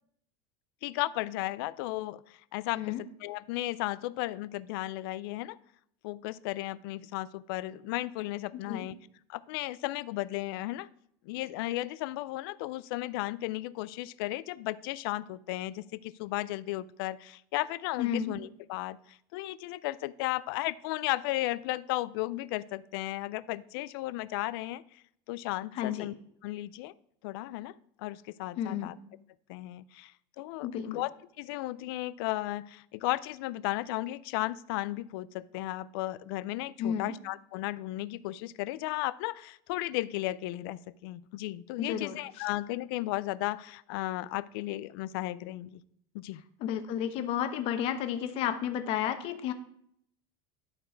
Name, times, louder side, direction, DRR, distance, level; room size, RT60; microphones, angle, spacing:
voice 1, 0.8-5.6 6.0-8.9 9.3-10.9 11.3-24.8 25.3-26.1 26.4-26.9 27.2-28.9 29.5-31.1 31.4-45.8 46.1-46.4, left 17 dB, 70° left, 17 dB, 0.4 m, -35 dB
voice 2, 18.0-18.3 25.7-26.1 28.6-28.9 30.6-31.0 36.8-37.1 41.8-42.2 46.6-49.5, left 9 dB, 50° left, 9 dB, 0.9 m, -32 dB
12.0 x 4.2 x 4.5 m, 0.70 s
supercardioid pair, 145°, 13 cm